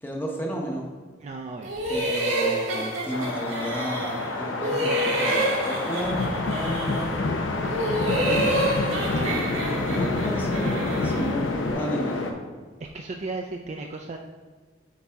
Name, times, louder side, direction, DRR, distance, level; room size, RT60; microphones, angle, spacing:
voice 1, 0.0-0.9 1.9-7.4 8.1-8.5 9.2-11.4 11.7-12.2, equal, 10° left, -1 dB, 0.8 m, -32 dB
voice 2, 1.2-1.7 9.1-9.4 12.9-14.2, right 3 dB, 35° right, 2 dB, 0.3 m, -35 dB
sound 1, 1.6-4.3 4.6-7.2 7.6-11.4, right 1 dB, 80° right, 1.6 m, -28 dB
sound 2, 3.1-12.3, left 2 dB, 85° left, 0.8 m, -30 dB
sound 3, 6.0-11.7, left 2 dB, 55° left, 0.4 m, -30 dB
8.7 x 4.1 x 3.5 m, 1.5 s
head